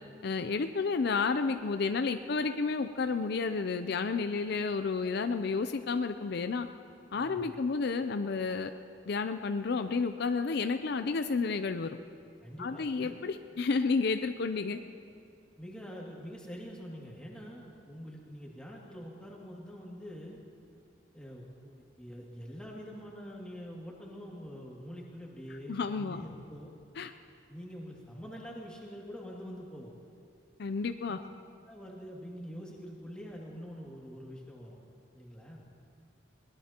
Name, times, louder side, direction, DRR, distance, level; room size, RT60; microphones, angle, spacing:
voice 1, 0.2-6.7 7.1-8.7 9.1-12.0 12.6-14.8 25.7-26.2 27.0-27.1 30.6-31.2, left 4 dB, 55° left, 9 dB, 0.5 m, -31 dB
voice 2, 7.1-7.5 12.4-13.2 15.6-20.4 21.1-26.7 27.5-29.9 31.1-31.3 31.7-34.8 35.1-35.6, equal, 5° left, -4 dB, 2.3 m, -45 dB
21.5 x 19.5 x 2.9 m, 2.4 s
head